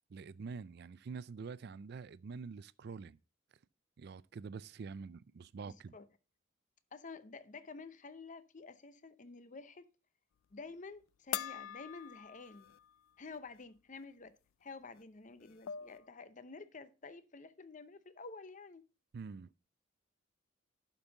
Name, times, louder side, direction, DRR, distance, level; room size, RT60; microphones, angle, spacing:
voice 1, 0.1-3.2 4.0-5.9 19.1-19.5, right 5 dB, 55° right, 0.4 m, -46 dB
voice 2, 5.6-6.1 6.9-9.9 10.5-12.7 13.2-18.8, left 4 dB, 40° left, 0.7 m, -50 dB
sound 1, 11.3-12.9 13.3-13.4 15.0-15.1 15.4-16.0, left 10 dB, 85° left, 0.4 m, -43 dB
11.5 x 5.4 x 3.9 m
head